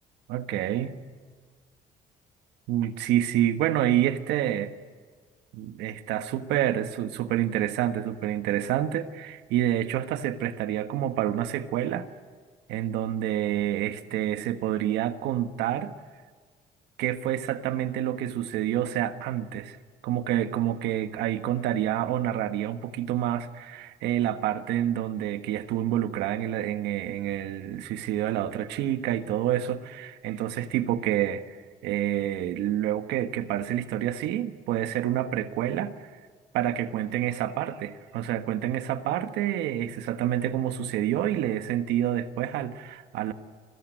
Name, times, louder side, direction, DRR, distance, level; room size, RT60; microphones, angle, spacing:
voice 1, 0.3-1.0 2.7-4.7 5.5-12.1 12.7-15.9 17.0-19.8 20.0-31.6 31.8-36.1 36.5-43.3, right 12 dB, 85° right, 9 dB, 1.4 m, -28 dB
30.0 x 20.5 x 9.2 m, 1.5 s
cardioid pair, 110°, 17 cm